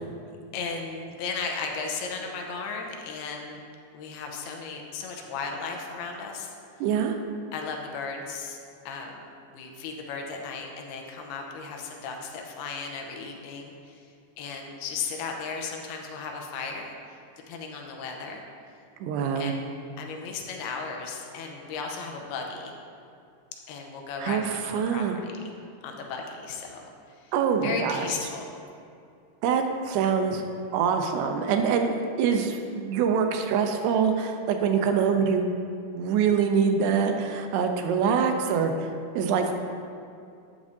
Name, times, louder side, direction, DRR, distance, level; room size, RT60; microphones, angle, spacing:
voice 1, 0.5-3.6 3.9-6.5 7.5-8.6 8.9-9.2 9.5-14.0 14.4-17.2 17.5-18.4 19.4-22.8 23.7-25.4 25.8-26.9 27.2-27.3 27.6-28.5, left 5 dB, 80° left, 1 dB, 2.6 m, -35 dB
voice 2, 6.8-7.2 19.0-19.5 24.2-24.4 24.7-25.2 27.3-28.1 29.4-30.4 30.7-35.5 35.9-38.7 39.2-39.5, right 6 dB, 85° right, 5 dB, 2.8 m, -24 dB
11.5 x 8.4 x 2.7 m, 2.4 s
omnidirectional pair, 4.7 m